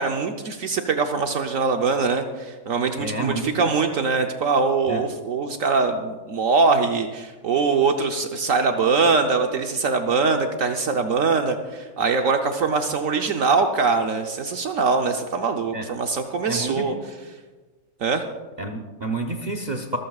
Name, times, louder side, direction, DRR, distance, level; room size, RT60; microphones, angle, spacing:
voice 1, 0.0-16.9 18.0-18.2, right 4 dB, 65° right, 5 dB, 1.2 m, -22 dB
voice 2, 3.0-3.8 4.9-5.0 15.7-15.9 16.5-16.9 18.6-20.0, right 2 dB, 35° right, 4 dB, 0.9 m, -29 dB
24.0 x 14.5 x 2.4 m, 1.3 s
omnidirectional pair, 1.5 m